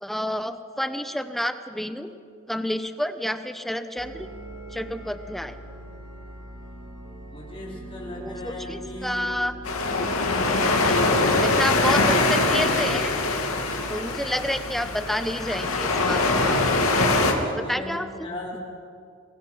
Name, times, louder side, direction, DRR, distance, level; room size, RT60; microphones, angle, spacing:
voice 1, 0.0-2.1 2.5-4.3 4.7-5.6 8.2-9.5 10.7-11.0 11.4-13.1 13.9-16.5 17.5-18.3, equal, ahead, 9 dB, 0.9 m, -29 dB
sound 1, 4.0-17.3, equal, 55° right, 4.2 m, -42 dB
voice 2, 7.3-9.3 17.4-18.6, left 1 dB, 25° left, -4 dB, 4.6 m, -38 dB
sound 2, 9.6-17.3, left 2 dB, 75° left, 2.6 m, -23 dB
25.5 x 22.5 x 5.7 m, 2.4 s
head